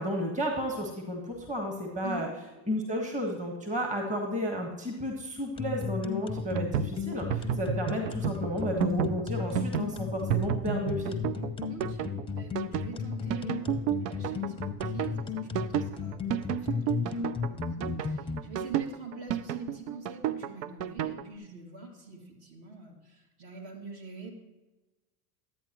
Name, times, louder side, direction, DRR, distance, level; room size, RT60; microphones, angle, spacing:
voice 1, 0.0-2.3 2.7-11.2, equal, 15° right, 1 dB, 1.5 m, -32 dB
sound 1, 5.6-18.4, left 7 dB, 10° left, 0.7 m, -34 dB
sound 2, 6.4-21.2, right 10 dB, 80° right, 0.6 m, -32 dB
voice 2, 11.7-24.3, right 2 dB, 50° right, 0 dB, 2.6 m, -45 dB
11.5 x 8.5 x 3.0 m, 1.1 s
hypercardioid pair, 90°, 48 cm